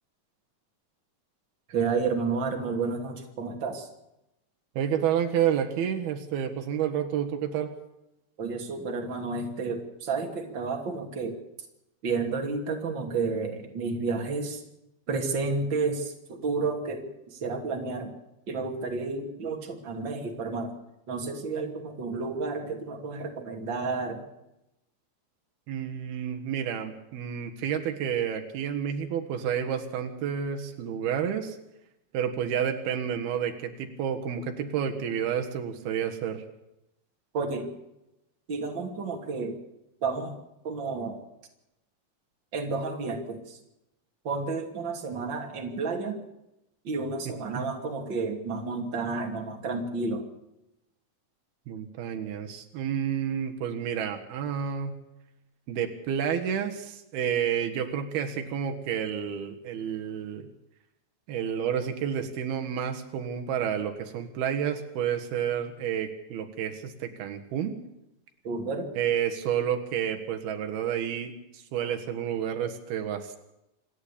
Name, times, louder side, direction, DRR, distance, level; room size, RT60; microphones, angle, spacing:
voice 1, 1.7-3.9 8.4-11.4 12.0-14.6 15.1-18.1 18.5-20.7 21.1-24.2 37.3-37.7 38.5-39.6 40.0-40.4 40.6-41.2 42.5-43.6 44.2-46.2 46.8-50.3 68.4-68.9, right 4 dB, 30° right, 3 dB, 3.1 m, -31 dB
voice 2, 4.8-7.7 25.7-31.6 32.1-36.4 47.5-47.6 51.7-55.0 55.7-60.5 61.3-67.8 69.0-73.4, right 8 dB, 85° right, 5 dB, 3.6 m, -30 dB
27.0 x 11.5 x 8.6 m, 0.88 s
omnidirectional pair, 4.4 m